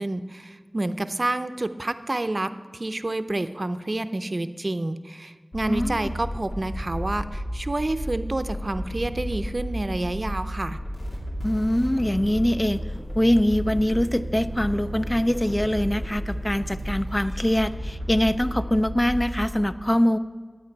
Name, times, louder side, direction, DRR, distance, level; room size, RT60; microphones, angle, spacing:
voice 1, 0.0-10.8, right 2 dB, 55° right, 11 dB, 0.5 m, -29 dB
sound 1, 5.5-19.4, equal, 80° left, 2.5 m, -32 dB
voice 2, 5.7-6.1 11.4-12.8 13.2-20.2, left 1 dB, 25° left, 11 dB, 0.5 m, -23 dB
14.0 x 9.2 x 4.6 m, 1.5 s
wide cardioid pair, 45°, 0 cm